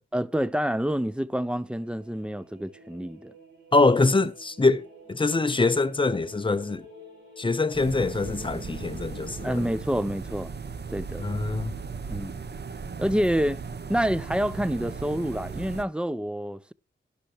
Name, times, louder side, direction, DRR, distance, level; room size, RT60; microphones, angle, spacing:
voice 1, 0.1-3.3 9.4-10.5 10.9-11.3 12.1-12.4 13.0-13.6 13.9-16.7, equal, 5° right, 0.5 m, -27 dB
sound 1, 1.3-9.7, left 2 dB, 75° right, 6.9 m, -49 dB
voice 2, 3.7-6.8 7.4-9.6 11.2-11.7, left 3 dB, 25° left, 0.9 m, -24 dB
sound 2, 7.7-15.8, right 5 dB, 60° right, 1.1 m, -37 dB
12.0 x 11.5 x 3.0 m
wide cardioid pair, 105°, 20 cm